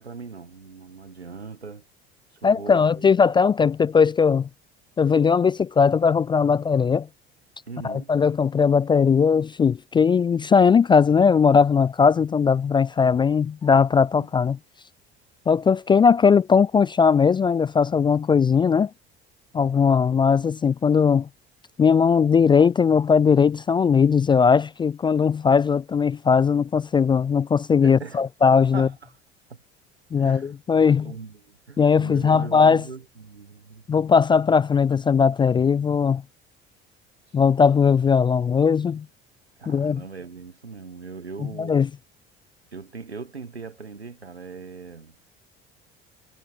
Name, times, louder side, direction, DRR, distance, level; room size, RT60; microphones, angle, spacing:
voice 1, 0.0-1.8 2.4-3.1 7.7-8.1 14.1-14.3 27.8-28.2 28.7-29.1 29.5-29.6 30.2-30.5 30.8-33.8 39.6-41.8 42.7-45.1, right 4 dB, 85° right, 1.8 m, -39 dB
voice 2, 2.4-4.5 5.0-7.1 7.8-14.6 15.5-18.9 19.5-21.3 21.8-28.9 30.1-31.1 31.8-32.8 33.9-36.2 37.3-39.1 39.7-40.0 41.6-41.9, left 6 dB, 15° left, 0.3 m, -19 dB
figure-of-eight pair, 60°, 31 cm